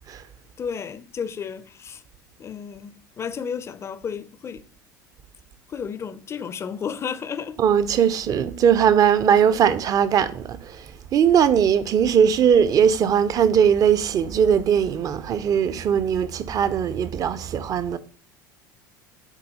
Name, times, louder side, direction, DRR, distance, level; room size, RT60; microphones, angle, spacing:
voice 1, 0.6-2.0 2.4-4.6 5.7-7.6, left 7 dB, 25° left, 0.5 m, -32 dB
voice 2, 7.6-10.8 11.1-18.0, right 8 dB, 35° right, 0.5 m, -19 dB
9.8 x 4.0 x 2.8 m
figure-of-eight pair, 70°, 10 cm